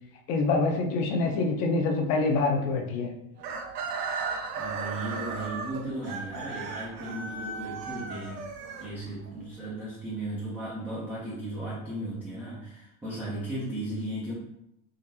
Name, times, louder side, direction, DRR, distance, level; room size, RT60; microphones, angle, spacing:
voice 1, 0.3-3.1, left 3 dB, 45° left, 2 dB, 0.6 m, -26 dB
Chicken rooster, 3.4-9.4, right 4 dB, 90° right, 0.8 m, -36 dB
voice 2, 4.6-8.5 8.8-14.3, right 1 dB, 5° right, -8 dB, 0.3 m, -36 dB
3.8 x 2.5 x 2.7 m, 0.81 s
supercardioid pair, 135°, 46 cm